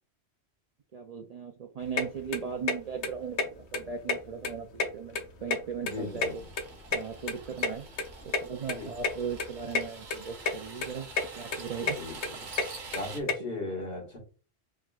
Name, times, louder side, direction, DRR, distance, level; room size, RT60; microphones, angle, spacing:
voice 1, 0.9-6.4 6.9-7.9 8.2-11.1 11.3-12.0, right 6 dB, 55° right, 0.4 m, -38 dB
sound 1, 2.0-2.1 2.3-2.8 3.0-3.1 3.4-3.5 3.7-4.5 4.8-6.0 6.2-7.7 8.0-8.1 8.3-8.4 8.7-8.8 9.0-9.2 9.4-9.8 10.1-10.5 10.8-11.3 11.5-13.3, left 4 dB, 90° left, 1.0 m, -29 dB
voice 2, 5.8-6.4 7.5-7.6 8.7-8.9 12.0-12.5 12.9-14.2, left 2 dB, 65° left, 1.8 m, -37 dB
sound 2, 5.9-13.2, right 4 dB, 80° right, 1.2 m, -46 dB
4.8 x 3.6 x 2.3 m
omnidirectional pair, 1.1 m